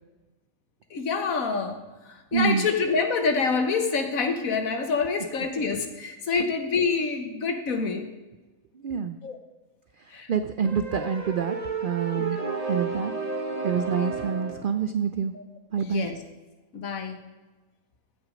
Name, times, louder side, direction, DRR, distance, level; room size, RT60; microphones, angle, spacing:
voice 1, 0.9-1.8 2.3-8.1 9.2-9.4 10.1-10.3 15.9-16.1 16.7-17.2, left 4 dB, 75° left, 6 dB, 1.6 m, -26 dB
voice 2, 2.3-2.7 8.7-9.2 10.0-12.4 12.7-13.1 13.6-15.3 15.7-16.1, right 7 dB, 75° right, 10 dB, 0.4 m, -27 dB
sound 1, 10.6-14.7, right 4 dB, 30° right, 1.0 m, -32 dB
15.0 x 6.1 x 5.1 m, 1.2 s
omnidirectional pair, 1.5 m